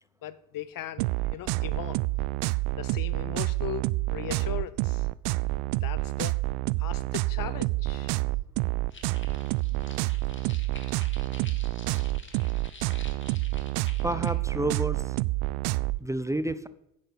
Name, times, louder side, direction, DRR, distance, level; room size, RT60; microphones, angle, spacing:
voice 1, 0.2-2.0 2.8-5.1 5.8-6.4 6.8-8.2, left 11 dB, 50° left, 0.8 m, -38 dB
sound 1, 1.0-16.0, right 21 dB, 65° right, 0.5 m, -28 dB
sound 2, 8.9-14.3, left 3 dB, 25° left, 2.3 m, -49 dB
voice 2, 14.0-15.2 16.0-16.7, right 1 dB, 5° right, 0.7 m, -30 dB
10.5 x 8.9 x 6.3 m
hypercardioid pair, 60°, 44 cm